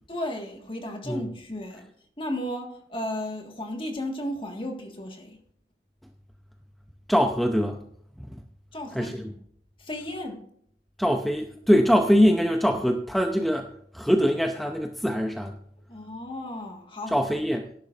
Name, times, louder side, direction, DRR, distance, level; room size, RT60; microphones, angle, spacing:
voice 1, 0.1-1.9 2.2-5.4 8.7-9.1 9.8-10.5 15.9-17.1, left 1 dB, 30° left, 1.6 m, -34 dB
voice 2, 7.1-7.8 8.2-8.4 8.9-9.3 11.0-13.7 13.9-15.6 17.1-17.7, equal, ahead, 0.6 m, -23 dB
17.5 x 11.0 x 2.5 m
head